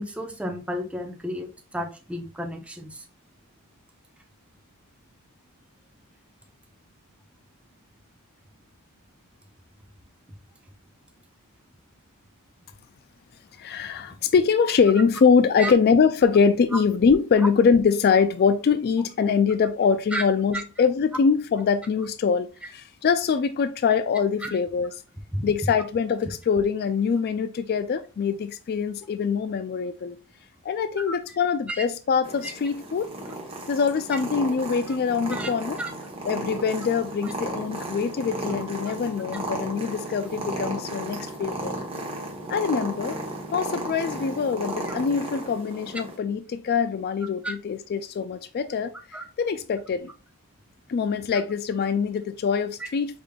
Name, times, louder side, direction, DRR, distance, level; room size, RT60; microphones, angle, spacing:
voice 1, 0.0-1.5 1.7-2.9 15.6-15.7 20.1-20.2 24.4-24.5 25.3-25.4 31.1-31.2 31.7-31.8 32.4-32.5 35.3-35.5 35.8-35.9 47.4-47.5 49.1-49.2, right 1 dB, 5° right, 0.7 m, -31 dB
voice 2, 13.6-24.9 25.4-30.2 30.6-33.1 33.7-35.8 36.2-41.7 42.5-43.2 43.5-50.1 50.9-53.2, left 6 dB, 45° left, 0.3 m, -23 dB
Purr, 32.2-46.2, right 1 dB, 25° right, 1.0 m, -34 dB
5.0 x 3.6 x 2.3 m
head